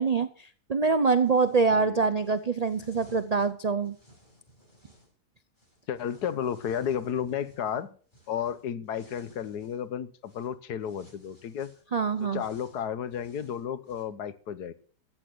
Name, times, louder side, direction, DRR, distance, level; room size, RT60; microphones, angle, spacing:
voice 1, 0.0-4.0 11.9-12.4, right 4 dB, 80° right, 0.3 m, -25 dB
sound 1, 1.2-1.7 2.2-5.1 5.6-9.9 10.2-10.5 10.8-14.0, equal, 30° left, 6.2 m, -57 dB
voice 2, 5.9-7.9 8.3-11.7 12.2-14.7, left 8 dB, 90° left, 1.5 m, -33 dB
14.0 x 8.5 x 6.2 m
omnidirectional pair, 1.7 m